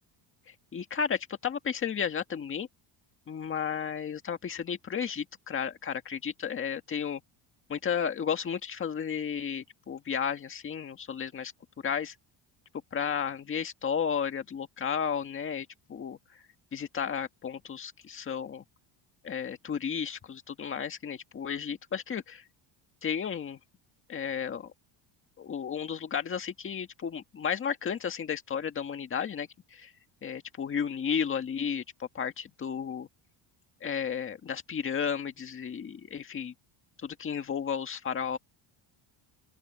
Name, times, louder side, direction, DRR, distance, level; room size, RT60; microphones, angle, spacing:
voice 1, 0.7-2.7 3.3-7.2 7.7-11.5 11.8-12.1 12.9-16.2 16.7-18.6 19.2-22.4 23.0-23.6 24.1-24.7 25.4-29.9 30.2-33.1 33.8-36.5 37.0-38.4, left 7 dB, 25° left, 1.8 m, -33 dB
open air
cardioid pair, 175°, 48 cm